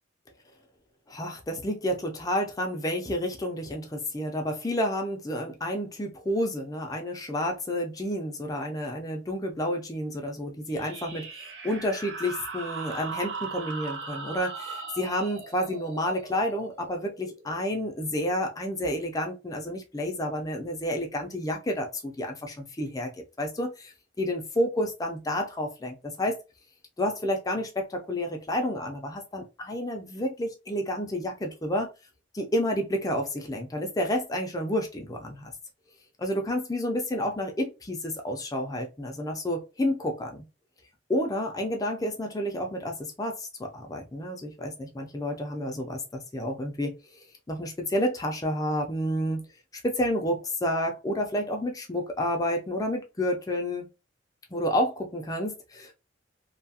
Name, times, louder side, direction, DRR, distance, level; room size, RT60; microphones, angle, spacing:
voice 1, 1.1-11.3 11.6-23.1 23.4-26.4 27.0-31.9 32.3-35.5 36.2-40.4 41.1-47.2 47.5-49.4 49.8-53.9 54.5-55.9, equal, 20° left, 2 dB, 0.4 m, -30 dB
sound 1, 10.7-17.9, right 4 dB, 65° right, 0.7 m, -39 dB
2.7 x 2.3 x 2.7 m, 0.28 s
head